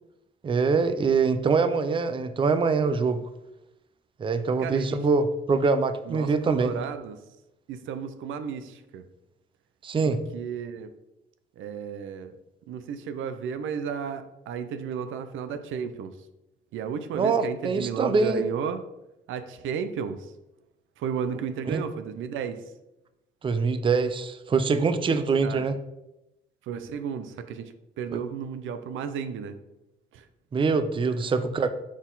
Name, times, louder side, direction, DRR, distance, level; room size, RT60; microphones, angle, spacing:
voice 1, 0.4-3.2 4.2-6.7 9.8-10.2 17.1-18.4 21.7-21.8 23.4-25.8 28.1-28.2 30.5-31.7, right 4 dB, 25° right, 10 dB, 0.4 m, -24 dB
voice 2, 4.6-5.0 6.1-7.2 7.7-9.0 10.0-10.9 11.6-12.4 12.7-16.1 16.7-18.8 19.3-20.2 21.0-22.6 25.1-25.7 26.6-29.6 30.1-30.2, right 7 dB, 80° right, 10 dB, 0.5 m, -33 dB
6.0 x 4.1 x 3.9 m, 0.92 s
cardioid pair, 90°, 20 cm